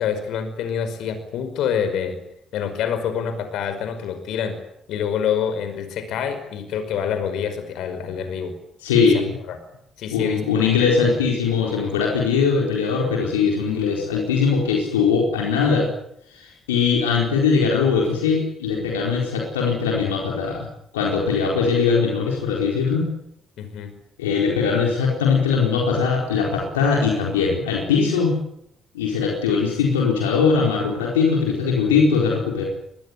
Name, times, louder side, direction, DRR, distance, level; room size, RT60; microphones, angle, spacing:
voice 1, 0.0-2.2 2.5-4.6 4.9-8.5 9.1-9.6 10.0-10.4 10.7-10.8 23.6-23.9, left 8 dB, 70° left, 9 dB, 5.3 m, -26 dB
voice 2, 8.8-9.3 10.1-15.9 16.3-20.7 20.9-23.1 24.2-28.4 28.9-32.7, left 5 dB, 90° left, -1 dB, 4.4 m, -20 dB
24.5 x 21.0 x 9.6 m, 0.75 s
hypercardioid pair, 45°, 0 cm